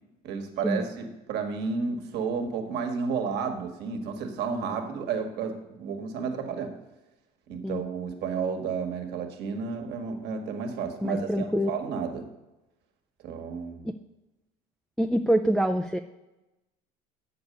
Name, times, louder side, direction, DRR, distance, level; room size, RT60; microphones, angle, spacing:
voice 1, 0.2-6.7 7.5-12.3 13.2-13.9, right 5 dB, 60° right, 5 dB, 1.6 m, -32 dB
voice 2, 11.0-11.7 13.8-13.9 15.0-16.0, equal, ahead, 5 dB, 0.4 m, -25 dB
8.2 x 6.7 x 5.2 m, 1.0 s
supercardioid pair, 85°, 19 cm